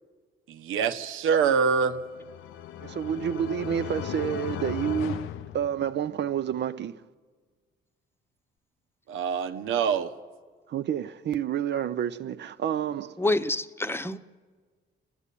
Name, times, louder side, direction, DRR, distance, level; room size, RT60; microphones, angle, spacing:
voice 1, 0.5-2.0 9.1-10.1, right 6 dB, 85° right, 1.2 m, -25 dB
sound 1, 1.7-6.3, left 10 dB, 90° left, 0.7 m, -37 dB
voice 2, 2.8-7.0 10.7-13.2, right 9 dB, 60° right, 0.7 m, -29 dB
voice 3, 13.2-14.2, left 2 dB, 10° left, 0.9 m, -27 dB
30.0 x 11.0 x 8.5 m
cardioid pair, 90°, 20 cm